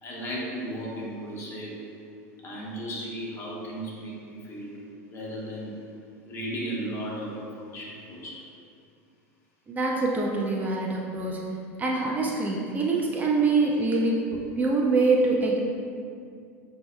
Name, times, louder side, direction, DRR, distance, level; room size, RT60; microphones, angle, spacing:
voice 1, 0.0-1.8 2.4-4.8 5.1-5.8 6.3-8.4, right 1 dB, 35° left, -4 dB, 1.2 m, -35 dB
voice 2, 9.7-11.4 11.8-15.6, right 3 dB, 25° right, -2 dB, 0.4 m, -25 dB
7.4 x 2.8 x 2.2 m, 2.4 s
supercardioid pair, 115°, 7 cm